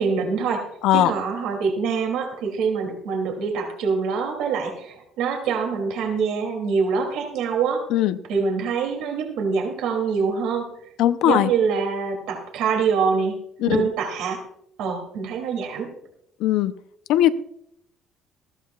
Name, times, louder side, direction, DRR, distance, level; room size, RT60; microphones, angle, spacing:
voice 1, 0.0-7.8 8.3-10.7 11.2-13.4 13.6-14.4 14.8-15.9, right 5 dB, 80° right, 2 dB, 2.6 m, -25 dB
voice 2, 11.0-11.5 13.6-13.9 16.4-16.7 17.1-17.3, left 13 dB, 75° left, 12 dB, 0.6 m, -19 dB
19.0 x 15.0 x 2.4 m, 0.73 s
cardioid pair, 175°, 0 cm